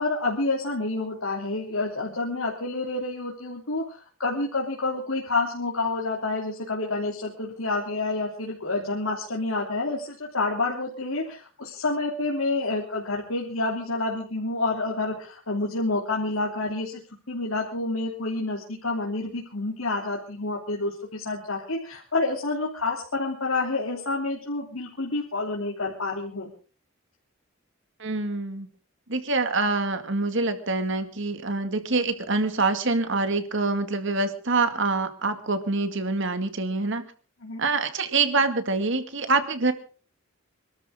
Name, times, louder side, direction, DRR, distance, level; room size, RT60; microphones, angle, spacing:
voice 1, 0.0-17.0 17.3-26.5 37.4-37.6, left 2 dB, 85° left, -3 dB, 3.2 m, -28 dB
voice 2, 28.0-28.7 29.1-37.0 37.6-39.7, right 3 dB, 65° right, 9 dB, 2.1 m, -25 dB
26.5 x 13.0 x 3.8 m, 0.38 s
head